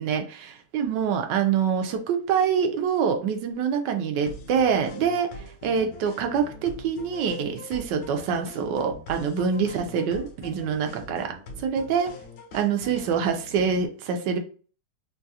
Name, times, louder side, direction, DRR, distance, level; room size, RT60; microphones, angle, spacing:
voice 1, 0.0-11.3 11.6-12.1 12.5-14.4, right 6 dB, 80° right, 5 dB, 1.3 m, -25 dB
sound 1, 4.3-13.9, left 2 dB, 65° left, 1.0 m, -43 dB
3.8 x 2.3 x 2.7 m, 0.40 s
omnidirectional pair, 1.9 m